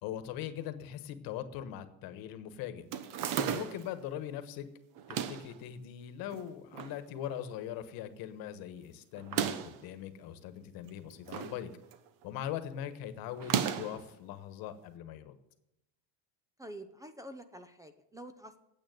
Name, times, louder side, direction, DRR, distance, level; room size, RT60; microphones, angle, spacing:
voice 1, 0.0-2.9 3.3-4.7 5.1-11.7 12.2-15.3, left 10 dB, 65° left, 11 dB, 1.3 m, -41 dB
Fridge refrigerator door open and close, 2.9-3.9 5.0-5.5 6.3-7.0 7.3-7.4 7.6-7.7 9.2-9.8 10.8-11.6 11.9-12.2 13.4-14.0, right 8 dB, 60° right, 1.1 m, -34 dB
voice 2, 16.6-18.6, right 1 dB, 10° right, 10 dB, 0.5 m, -47 dB
9.3 x 8.3 x 9.4 m, 0.87 s
cardioid pair, 150°, 38 cm